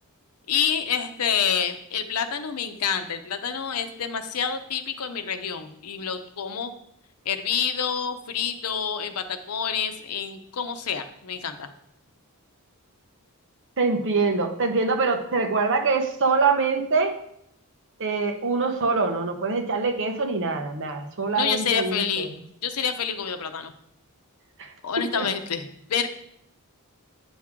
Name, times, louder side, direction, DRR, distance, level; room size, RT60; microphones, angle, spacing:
voice 1, 0.5-6.7 7.3-11.7 21.3-22.3 22.6-23.7 24.8-26.1, left 7 dB, 85° left, 8 dB, 0.8 m, -28 dB
voice 2, 13.8-17.1 18.0-22.3 24.6-24.7 25.1-25.3, right 4 dB, 60° right, 4 dB, 1.0 m, -24 dB
9.3 x 6.1 x 3.7 m, 0.74 s
head